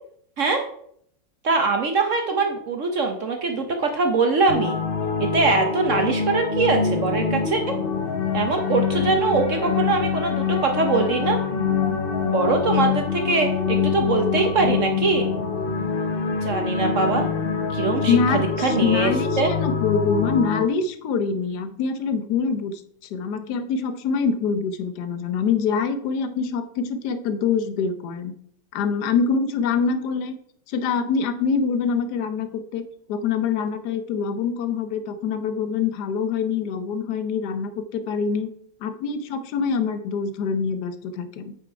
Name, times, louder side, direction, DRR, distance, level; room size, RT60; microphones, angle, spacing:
voice 1, 1.4-4.8 5.2-7.8 8.3-11.4 12.2-15.3 16.4-17.3 17.7-19.1 19.4-19.5, right 4 dB, 55° right, 4 dB, 0.9 m, -22 dB
sound 1, 4.5-20.7, left 6 dB, 85° left, 0.4 m, -25 dB
voice 2, 18.1-22.8 23.1-28.3 28.7-30.4 30.7-32.8 33.1-38.5 38.8-41.6, left 5 dB, 65° left, 10 dB, 1.3 m, -25 dB
8.9 x 5.0 x 4.6 m, 0.66 s
omnidirectional pair, 2.0 m